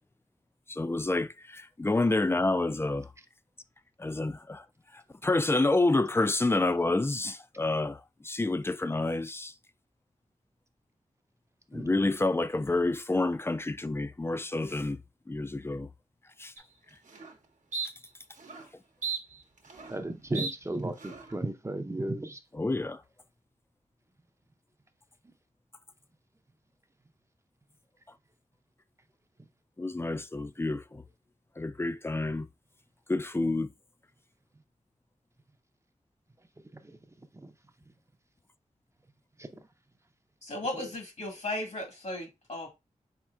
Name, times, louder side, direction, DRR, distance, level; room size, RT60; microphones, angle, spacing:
voice 1, 0.7-3.1 4.0-4.6 4.9-9.5 11.7-15.0 15.3-15.9 16.4-16.5 22.5-23.0 29.8-31.0 31.6-32.5 33.1-33.7, left 2 dB, 20° left, 0.3 m, -28 dB
sound 1, 16.6-16.7 17.1-17.3 17.7-17.9 18.4-18.7 19.0-20.0 20.3-20.5 21.0-21.3, right 5 dB, 70° right, 0.9 m, -36 dB
voice 2, 19.9-22.4 36.8-37.0 37.4-37.5 39.4-39.5, right 2 dB, 20° right, 0.6 m, -34 dB
voice 3, 40.4-42.7, left 1 dB, 65° left, 1.7 m, -36 dB
4.3 x 4.3 x 2.4 m
wide cardioid pair, 65°, 13 cm